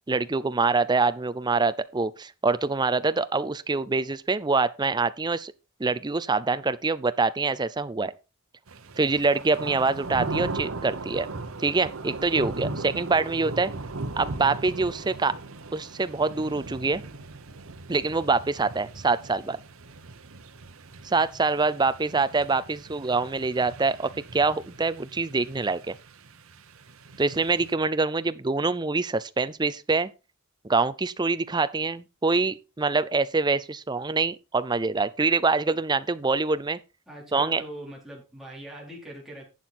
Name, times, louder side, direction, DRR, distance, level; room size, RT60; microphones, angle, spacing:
voice 1, 0.1-5.5 5.8-8.1 9.0-11.3 11.6-13.7 14.2-15.3 15.7-17.0 17.9-19.6 21.0-26.0 27.2-30.1 30.6-36.8 37.3-37.6, right 3 dB, 20° right, 0.5 m, -25 dB
sound 1, 8.7-27.7, right 3 dB, 70° right, 1.1 m, -38 dB
voice 2, 37.1-39.5, right 1 dB, ahead, 4.0 m, -41 dB
11.5 x 7.8 x 4.3 m
head